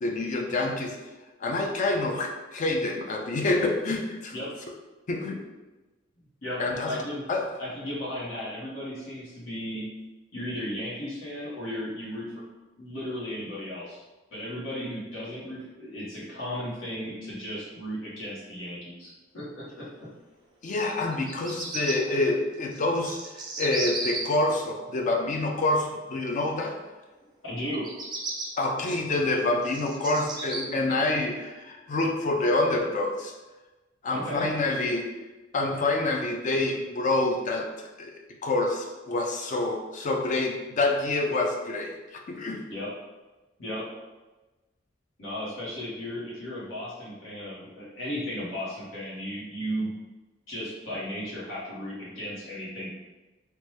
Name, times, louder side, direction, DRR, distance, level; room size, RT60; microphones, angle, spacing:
voice 1, 0.0-1.0 1.4-4.3 5.1-5.4 6.6-6.9 7.3-7.5 20.6-26.8 28.6-33.3 34.0-35.1 35.5-37.7 38.0-38.2 38.4-42.6, left 2 dB, 40° left, 2 dB, 0.4 m, -27 dB
voice 2, 6.9-7.2 7.6-9.9 10.3-12.3 12.8-14.0 14.3-19.9 27.4-27.9 34.1-34.5 42.7-42.9 43.6-43.8 45.2-49.9 50.5-53.0, equal, 85° left, -8 dB, 1.0 m, -35 dB
Bird vocalization bird call bird song, 21.1-21.9 22.7-24.2 27.7-28.5 29.1-30.6, right 3 dB, 20° right, 0.5 m, -34 dB
2.9 x 2.2 x 3.1 m, 1.1 s
head